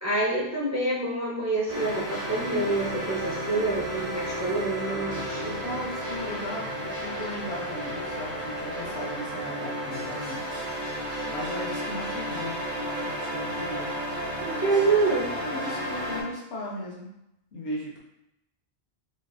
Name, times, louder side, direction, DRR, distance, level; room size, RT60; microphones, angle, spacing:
voice 1, 0.0-5.6 14.4-15.3, right 3 dB, 25° right, -5 dB, 0.4 m, -27 dB
sound 1, 1.7-16.2, equal, 50° right, 1.2 m, -33 dB
voice 2, 4.7-10.8 11.2-12.6 13.0-13.9 15.3-17.1 17.5-18.0, left 1 dB, 90° left, -3 dB, 1.1 m, -37 dB
4.4 x 2.4 x 2.3 m, 0.86 s
omnidirectional pair, 1.1 m